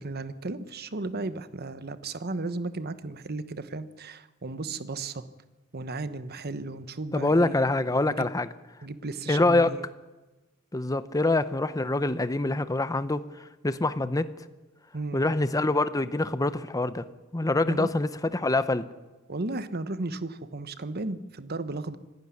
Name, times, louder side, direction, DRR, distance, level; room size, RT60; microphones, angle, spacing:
voice 1, 0.0-5.2 5.7-7.7 8.0-8.3 8.8-9.8 14.9-15.2 17.7-17.9 19.3-22.0, right 2 dB, 50° right, 12 dB, 1.1 m, -35 dB
voice 2, 7.1-8.5 9.3-9.7 10.7-13.2 13.6-14.3 15.1-17.0 17.3-18.8, left 2 dB, 15° left, 13 dB, 0.7 m, -25 dB
25.5 x 12.0 x 9.7 m, 1.2 s
head